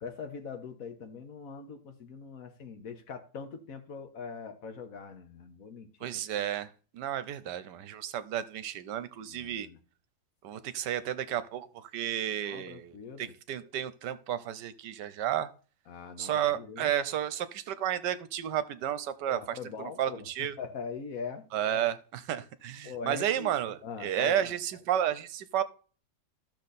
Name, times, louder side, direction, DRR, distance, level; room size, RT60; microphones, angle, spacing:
voice 1, 0.0-5.9 9.2-9.8 12.4-13.3 15.9-16.9 19.3-21.4 22.8-23.5 23.8-24.5, left 5 dB, 55° left, 1.5 m, -42 dB
voice 2, 6.0-9.7 10.4-15.5 16.2-20.6 21.5-25.6, right 10 dB, 70° right, 1.4 m, -32 dB
12.5 x 6.6 x 4.2 m
omnidirectional pair, 2.0 m